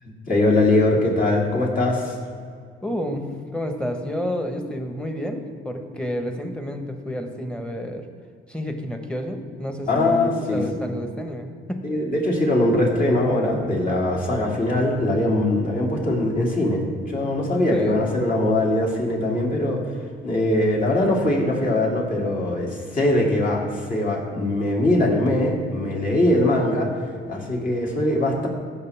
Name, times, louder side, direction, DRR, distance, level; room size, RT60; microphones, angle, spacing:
voice 1, 0.0-2.2 9.8-10.9 11.8-19.8 20.2-26.9 27.3-28.5, left 1 dB, 45° left, -1 dB, 2.7 m, -21 dB
voice 2, 2.8-8.0 8.5-11.8 17.7-18.0, equal, 5° left, 5 dB, 1.3 m, -30 dB
16.0 x 6.6 x 3.5 m, 2.1 s
cardioid pair, 90°, 20 cm